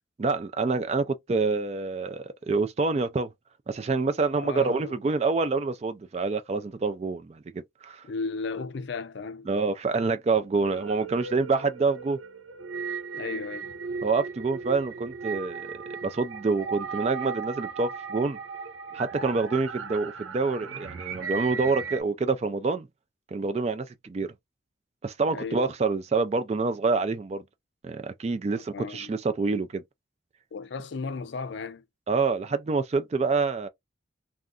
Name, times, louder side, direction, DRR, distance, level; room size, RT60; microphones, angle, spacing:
voice 1, 0.2-3.3 3.7-8.0 9.5-12.2 14.0-18.4 18.9-22.9 23.3-24.3 25.0-27.4 27.8-29.8 32.1-33.7, right 4 dB, 35° right, 0.3 m, -27 dB
voice 2, 4.4-4.9 8.0-9.5 13.1-13.7 18.9-19.0 25.3-25.7 28.5-29.1 30.5-31.8, left 4 dB, 65° left, 0.4 m, -35 dB
sound 1, 10.5-22.0, right 5 dB, 90° right, 0.5 m, -37 dB
2.5 x 2.3 x 3.5 m
head